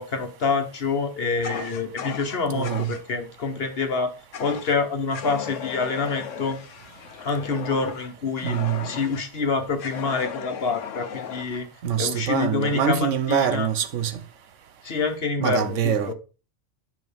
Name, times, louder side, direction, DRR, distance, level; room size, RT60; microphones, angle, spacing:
voice 1, 0.0-4.1 4.4-6.6 7.2-8.6 8.8-11.7 12.0-13.7 14.8-16.1, left 4 dB, 50° left, 1.3 m, -27 dB
Fire, 1.4-3.0 4.3-4.8 5.1-9.3 9.8-11.6, left 8 dB, 75° left, 1.2 m, -36 dB
voice 2, 2.5-2.9 8.4-8.9 11.8-14.2 15.4-16.1, right 8 dB, 75° right, 1.1 m, -24 dB
9.2 x 5.6 x 3.5 m
omnidirectional pair, 1.3 m